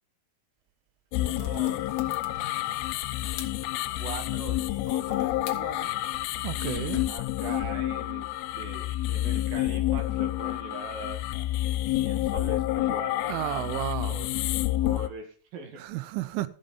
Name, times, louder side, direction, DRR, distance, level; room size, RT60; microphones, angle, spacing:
sound 1, 1.1-15.1, left 15 dB, 85° left, 3.2 m, -29 dB
sound 2, 1.1-7.0, left 8 dB, 65° left, 3.0 m, -45 dB
voice 1, 1.1-1.9 3.9-6.0 7.1-8.3 8.6-11.5 11.9-14.3 14.8-16.0, right 3 dB, 60° right, 3.0 m, -41 dB
voice 2, 6.4-7.1 13.3-14.2 15.8-16.5, right 15 dB, 85° right, 3.2 m, -32 dB
14.0 x 7.5 x 5.4 m
omnidirectional pair, 5.6 m